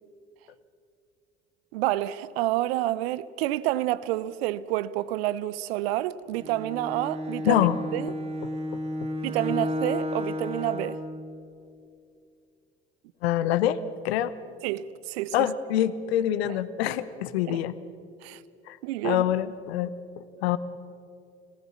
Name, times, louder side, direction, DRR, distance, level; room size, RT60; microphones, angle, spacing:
voice 1, 1.7-7.7 7.9-8.1 9.2-11.0 14.6-15.5 17.5-17.6 18.2-18.4 18.8-19.2, right 15 dB, 70° right, 0.8 m, -29 dB
Bowed string instrument, 6.3-11.1, left 1 dB, 20° right, 3.0 m, -32 dB
voice 2, 7.4-7.8 13.2-14.3 15.3-17.7 18.7-18.8 19.0-20.6, left 11 dB, 70° left, 1.0 m, -25 dB
26.0 x 18.5 x 7.2 m
figure-of-eight pair, 60°, 32 cm